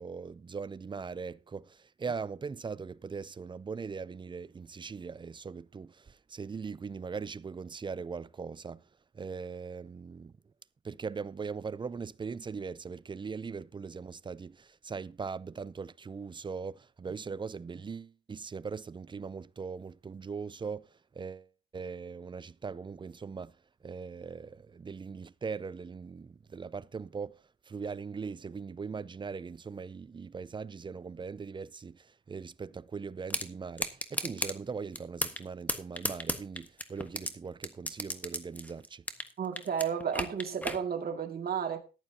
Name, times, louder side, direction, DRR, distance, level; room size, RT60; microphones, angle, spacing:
voice 1, 0.0-8.8 9.1-10.3 10.8-20.9 21.1-21.5 21.7-23.5 23.8-39.0, right 5 dB, 25° right, 0.5 m, -40 dB
sound 1, 33.3-33.5 33.8-34.5 34.9-35.4 35.7-37.3 37.6-39.3 39.6-40.8, left 1 dB, 10° left, 1.4 m, -33 dB
voice 2, 39.4-41.8, right 7 dB, 50° right, 2.2 m, -32 dB
14.5 x 11.0 x 2.8 m
cardioid pair, 90°, 20 cm